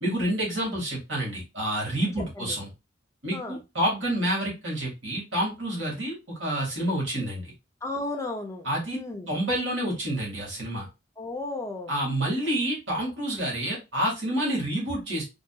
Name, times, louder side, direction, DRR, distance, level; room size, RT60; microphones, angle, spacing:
voice 1, 0.0-2.7 3.2-7.5 8.6-9.0 9.3-10.9 11.9-15.2, right 1 dB, 75° right, 1.9 m, -28 dB
voice 2, 7.8-9.3 11.2-11.9, left 2 dB, 15° left, 0.5 m, -34 dB
3.8 x 2.6 x 2.3 m
head